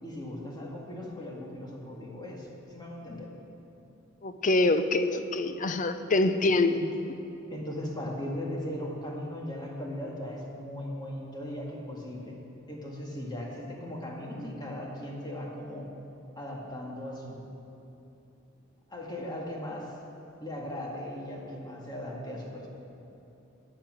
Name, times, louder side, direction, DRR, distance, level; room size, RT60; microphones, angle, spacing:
voice 1, 0.0-3.3 6.7-6.8 7.5-12.4 12.7-15.9 16.4-17.5 18.9-19.9 20.4-22.7, left 1 dB, 20° left, -2 dB, 1.9 m, -38 dB
voice 2, 4.2-6.8, left 2 dB, 40° left, 10 dB, 0.6 m, -25 dB
11.5 x 8.8 x 7.7 m, 2.9 s
head